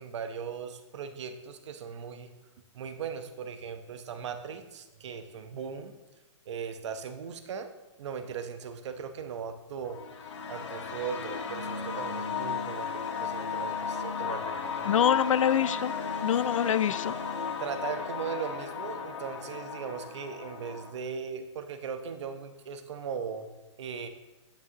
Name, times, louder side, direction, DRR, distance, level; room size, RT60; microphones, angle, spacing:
voice 1, 0.0-2.3 2.7-6.0 6.5-7.7 8.0-10.0 10.5-15.1 17.6-23.5 23.8-24.1, right 6 dB, 65° right, 9 dB, 0.9 m, -38 dB
sound 1, 9.9-20.9, left 6 dB, 65° left, 1.6 m, -35 dB
voice 2, 14.8-15.9 16.2-17.2, left 9 dB, 85° left, 16 dB, 0.4 m, -25 dB
9.9 x 8.9 x 2.9 m, 1.1 s
hypercardioid pair, 145°, 16 cm